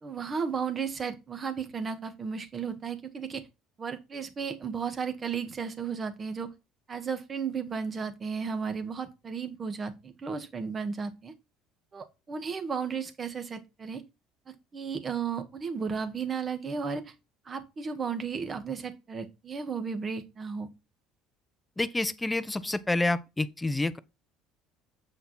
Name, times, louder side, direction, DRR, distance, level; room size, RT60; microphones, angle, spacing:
voice 1, 0.0-3.4 3.8-6.5 6.9-11.3 11.9-14.0 14.5-17.0 17.5-20.7, right 6 dB, 35° right, 1.8 m, -34 dB
voice 2, 21.8-24.0, left 2 dB, 10° left, 0.9 m, -28 dB
7.8 x 5.7 x 4.4 m
hypercardioid pair, 75°, 0 cm